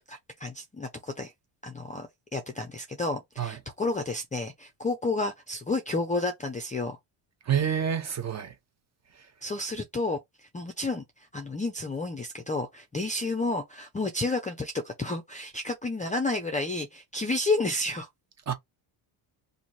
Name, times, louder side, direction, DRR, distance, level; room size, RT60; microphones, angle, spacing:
voice 1, 0.1-1.3 1.6-2.1 2.3-7.0 9.4-10.2 10.5-11.0 11.3-18.1, left 2 dB, 15° left, 0.4 m, -31 dB
voice 2, 7.5-8.5 18.5-18.6, right 8 dB, 35° right, 0.8 m, -27 dB
3.0 x 2.6 x 4.0 m
cardioid pair, 150°, 49 cm